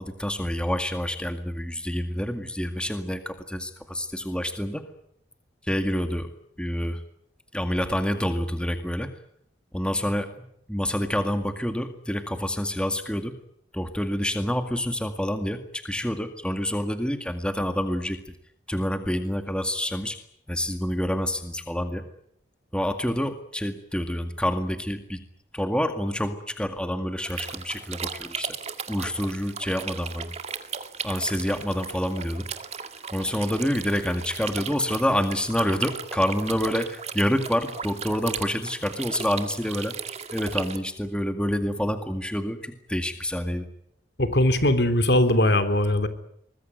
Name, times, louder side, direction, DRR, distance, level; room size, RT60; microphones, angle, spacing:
voice 1, 0.0-4.9 5.7-6.3 6.6-7.0 7.5-9.1 9.7-10.3 10.7-13.3 13.7-18.3 18.7-20.2 20.5-22.0 22.7-25.2 25.5-28.6 28.9-30.3 31.0-32.5 33.1-40.0 40.3-43.7, equal, 5° left, 7 dB, 2.0 m, -27 dB
sound 1, 27.2-40.8, right 6 dB, 40° right, 2.0 m, -36 dB
voice 2, 44.2-46.1, left 1 dB, 70° left, 10 dB, 3.2 m, -20 dB
24.0 x 21.0 x 9.3 m, 0.72 s
head